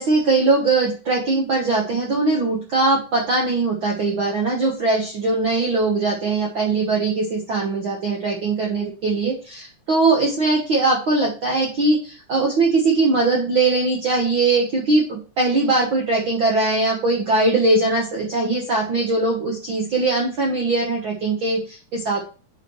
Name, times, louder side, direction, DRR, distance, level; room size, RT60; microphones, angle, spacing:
voice 1, 0.0-22.2, right 3 dB, 70° right, -1 dB, 1.2 m, -21 dB
9.4 x 5.4 x 3.1 m, 0.35 s
omnidirectional pair, 4.0 m